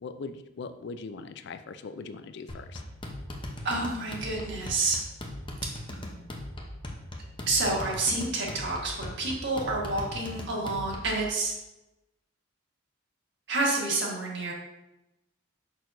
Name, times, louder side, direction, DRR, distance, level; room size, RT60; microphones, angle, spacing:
voice 1, 0.0-2.8, left 4 dB, 55° left, 11 dB, 0.4 m, -40 dB
sound 1, 2.5-11.2, left 1 dB, 25° left, 0.7 m, -40 dB
voice 2, 3.6-5.0 7.5-11.5 13.5-14.5, right 2 dB, 60° right, -2 dB, 1.5 m, -29 dB
6.5 x 6.0 x 2.6 m, 0.94 s
head